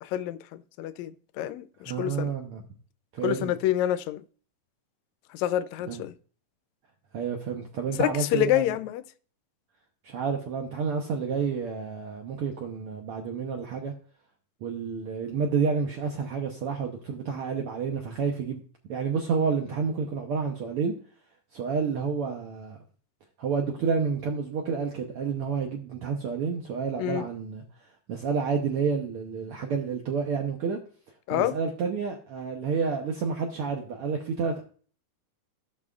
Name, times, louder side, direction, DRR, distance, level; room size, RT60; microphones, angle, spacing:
voice 1, 0.0-2.3 3.2-4.2 5.3-6.1 8.0-9.0 27.0-27.2 31.3-31.6, left 13 dB, 80° left, 1.7 m, -27 dB
voice 2, 1.9-2.7 3.1-3.5 5.8-6.0 7.1-8.8 10.0-13.9 14.6-18.6 18.9-20.9 21.5-22.8 23.4-27.6 28.1-30.8 31.3-34.6, right 5 dB, 80° right, 1.2 m, -29 dB
16.0 x 6.1 x 2.4 m
omnidirectional pair, 3.7 m